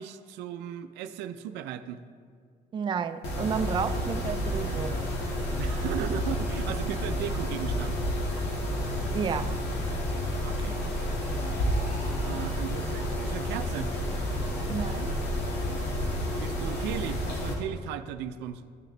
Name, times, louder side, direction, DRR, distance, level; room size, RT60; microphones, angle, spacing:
voice 1, 0.0-2.0 5.6-8.0 10.4-10.8 12.2-13.9 16.4-18.6, right 10 dB, 90° right, 0.5 m, -36 dB
voice 2, 2.7-5.1 9.1-9.6 14.7-15.2, right 6 dB, 30° right, 0.4 m, -31 dB
Mechanisms, 3.2-17.5, equal, 90° left, 1.7 m, -30 dB
sound 1, 10.2-12.1 12.4-12.5 12.8-12.9 13.2-13.3 13.6-13.7 14.0-14.1 14.4-14.5 14.8-14.9 15.2-15.3, left 1 dB, 60° left, 2.1 m, -48 dB
14.0 x 6.5 x 3.2 m
cardioid pair, 110°, 17 cm